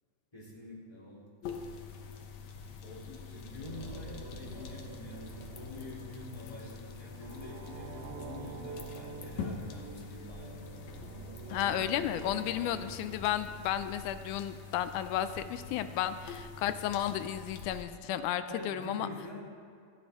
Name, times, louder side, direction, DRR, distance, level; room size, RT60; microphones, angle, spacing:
voice 1, 0.3-1.3 2.8-10.6 11.4-13.0 15.5-15.8 18.5-19.4, left 2 dB, 10° left, -6 dB, 3.0 m, -46 dB
sound 1, 1.4-17.9, left 6 dB, 65° left, 2.1 m, -45 dB
sound 2, 3.1-14.2, right 7 dB, 80° right, 2.2 m, -48 dB
voice 2, 11.5-19.1, left 11 dB, 80° left, 11 dB, 1.9 m, -33 dB
26.5 x 9.6 x 3.6 m, 2.2 s
omnidirectional pair, 3.8 m